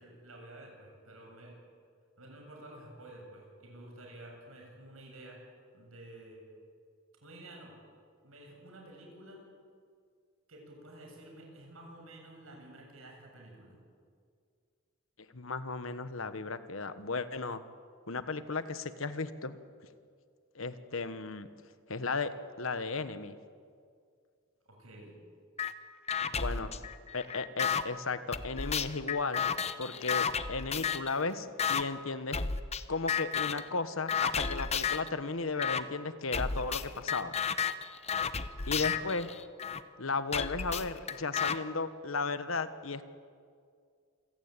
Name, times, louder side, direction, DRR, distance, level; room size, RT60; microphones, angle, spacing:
voice 1, 0.0-1.6 2.2-5.4 5.7-6.4 7.2-7.8 8.2-9.5 10.5-13.8 24.7-25.2 26.2-26.7 38.6-39.0, right 1 dB, 80° right, 1 dB, 7.1 m, -51 dB
voice 2, 15.3-17.6 18.1-19.6 20.5-21.5 21.9-22.3 22.6-23.4 26.4-26.7 27.1-29.5 29.8-32.4 32.9-37.4 38.7-39.3 40.0-43.0, left 4 dB, 75° left, 12 dB, 1.3 m, -35 dB
sound 1, 25.6-25.7 26.1-27.8 28.3-31.1 31.6-31.8 32.3-32.8 33.1-33.7 34.1-35.1 35.6-35.8 36.3-39.8 40.3-41.6, left 6 dB, 30° left, 0.9 m, -32 dB
27.0 x 16.5 x 9.0 m, 2.2 s
head